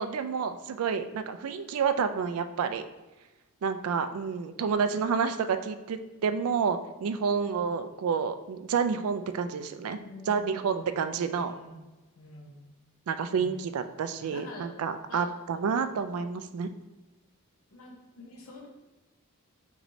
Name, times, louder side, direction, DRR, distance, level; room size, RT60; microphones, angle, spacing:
voice 1, 0.0-2.9 3.6-10.0 10.3-11.5 13.1-16.7, right 6 dB, 75° right, 10 dB, 0.3 m, -29 dB
voice 2, 9.9-11.0 11.3-11.8 12.2-12.6 13.3-13.6 14.2-14.7 15.1-15.3 17.7-18.7, left 2 dB, 65° left, 0 dB, 0.9 m, -47 dB
5.9 x 3.1 x 2.7 m, 1.1 s
head